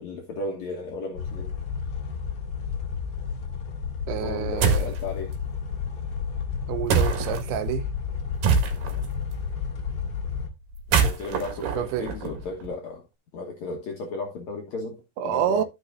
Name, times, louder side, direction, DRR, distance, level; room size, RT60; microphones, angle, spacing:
voice 1, 0.0-1.5 4.2-5.3 11.0-13.0 13.3-15.6, left 3 dB, 65° left, 1.8 m, -35 dB
sound 1, 1.2-10.5, left 6 dB, 50° left, 2.2 m, -32 dB
voice 2, 4.1-4.9 6.7-7.9 11.6-12.1 15.2-15.6, right 10 dB, 80° right, 2.6 m, -28 dB
sound 2, 4.6-5.0 6.9-7.4 8.4-9.1 10.7-12.7, right 5 dB, 65° right, 3.0 m, -24 dB
13.0 x 6.3 x 2.5 m
omnidirectional pair, 4.7 m